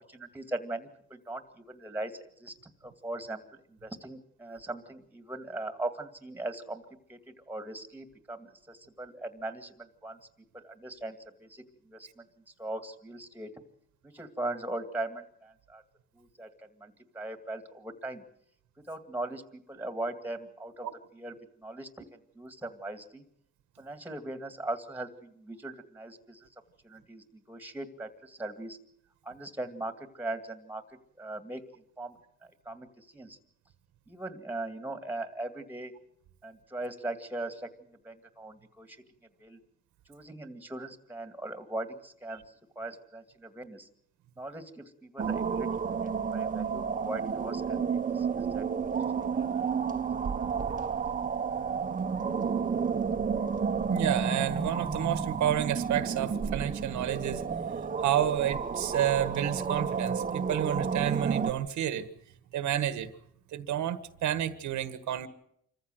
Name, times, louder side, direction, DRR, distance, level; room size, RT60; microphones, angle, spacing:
voice 1, 0.0-3.4 3.7-6.8 7.1-10.2 10.5-12.2 12.6-13.5 14.1-15.8 16.1-18.2 18.9-19.4 19.7-20.9 21.1-22.0 22.4-23.2 23.8-26.5 26.8-28.8 29.2-30.8 31.2-31.6 32.0-32.2 32.7-33.4 34.1-35.9 36.4-37.7 38.0-39.0 39.4-39.6 40.1-42.4 42.8-43.9 44.4-45.7 46.0-48.9 49.3-50.0, right 2 dB, 5° right, 9 dB, 2.2 m, -39 dB
sound 1, 45.2-61.5, right 6 dB, 30° right, 1.1 m, -31 dB
voice 2, 53.9-57.4 58.0-62.1 62.5-63.1 63.5-65.3, right 11 dB, 80° right, 12 dB, 1.5 m, -30 dB
26.5 x 14.5 x 7.9 m, 0.72 s
cardioid pair, 110°, 29 cm